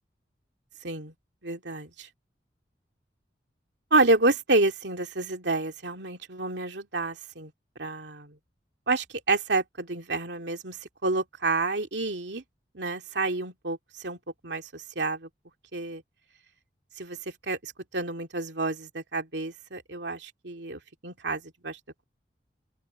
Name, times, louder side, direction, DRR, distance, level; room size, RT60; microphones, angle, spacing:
voice 1, 0.8-1.1 1.4-2.1 3.9-7.5 7.8-8.4 8.9-12.4 12.7-14.2 14.4-15.3 15.7-16.0 17.0-17.2 17.4-22.0, right 2 dB, 85° right, 2.5 m, -29 dB
open air
head